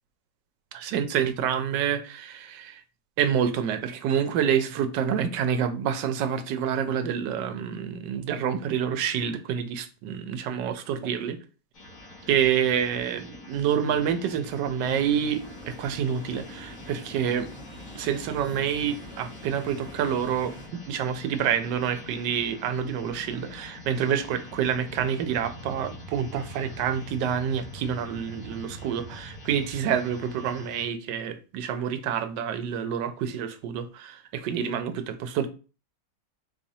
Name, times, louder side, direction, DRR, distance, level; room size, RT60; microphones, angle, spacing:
voice 1, 0.7-2.8 3.2-11.4 12.3-17.5 17.9-20.5 20.9-35.5, right 8 dB, 85° right, 1.2 m, -27 dB
sound 1, 11.7-30.8, left 1 dB, 55° left, 1.7 m, -44 dB
sound 2, 14.8-20.7, right 1 dB, 5° right, 0.5 m, -46 dB
4.0 x 3.1 x 2.7 m
omnidirectional pair, 1.9 m